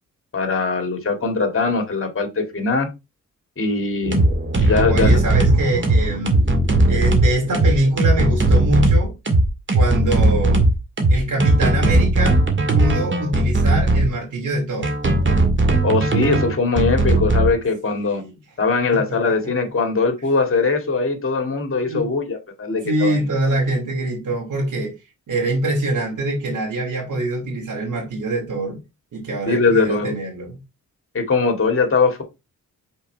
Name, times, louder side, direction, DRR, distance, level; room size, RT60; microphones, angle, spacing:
voice 1, 0.3-2.9 3.6-4.2 4.6-5.1 15.8-18.2 18.6-23.2 23.5-23.6 29.5-30.1 31.1-32.2, left 4 dB, 40° left, 2.3 m, -21 dB
sound 1, 4.0-14.1 14.8-17.5, right 2 dB, 40° right, 1.9 m, -17 dB
voice 2, 4.9-6.4 6.9-9.1 9.7-10.6 11.1-12.4 12.7-14.9 18.0-18.3 18.9-19.0 21.8-22.1 22.8-24.9 25.3-28.8 29.1-30.6, right 1 dB, 70° right, 2.7 m, -24 dB
5.6 x 4.4 x 4.6 m
cardioid pair, 85°, 32 cm